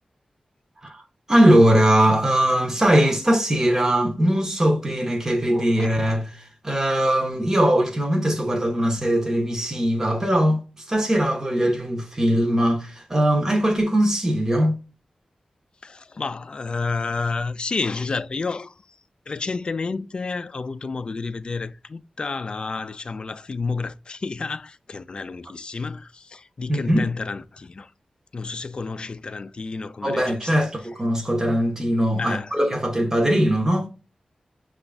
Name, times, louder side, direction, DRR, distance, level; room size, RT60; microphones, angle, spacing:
voice 1, 1.3-14.8 26.7-27.1 30.0-33.9, right 1 dB, 20° right, 0.8 m, -20 dB
voice 2, 15.8-18.8 19.3-27.9 28.3-30.3 32.2-32.5, left 4 dB, 45° left, 0.3 m, -30 dB
5.9 x 2.4 x 3.3 m
wide cardioid pair, 115°, 2 cm